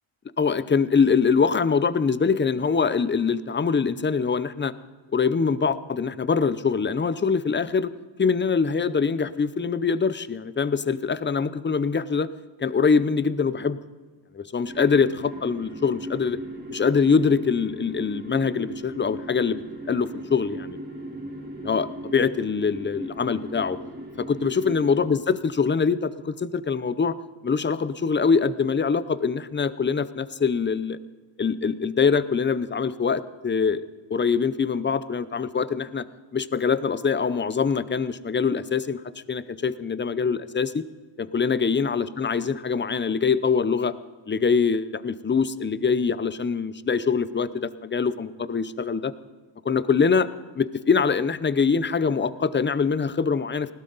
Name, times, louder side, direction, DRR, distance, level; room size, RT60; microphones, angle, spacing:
voice 1, 0.4-4.7 5.1-7.9 8.2-12.3 12.6-13.8 14.3-16.4 16.7-20.8 21.6-23.8 24.2-27.2 27.4-31.0 31.4-33.8 34.1-36.1 36.3-39.0 39.3-40.8 41.2-43.9 44.3-49.1 49.6-50.3 50.6-53.7, left 5 dB, 25° left, 16 dB, 0.6 m, -23 dB
sound 1, 14.7-25.0, right 1 dB, 20° right, 3.0 m, -38 dB
20.0 x 17.0 x 4.0 m, 1.3 s
wide cardioid pair, 120°, 49 cm